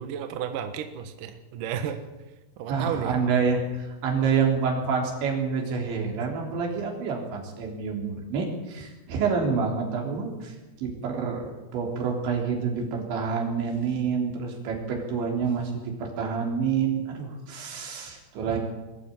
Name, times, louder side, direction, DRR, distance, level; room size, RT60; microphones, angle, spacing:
voice 1, 0.0-2.0 2.6-3.2, right 9 dB, 60° right, 7 dB, 2.5 m, -32 dB
voice 2, 2.7-18.6, right 5 dB, 85° right, 1 dB, 5.8 m, -28 dB
22.5 x 13.0 x 8.9 m, 1.1 s
omnidirectional pair, 5.1 m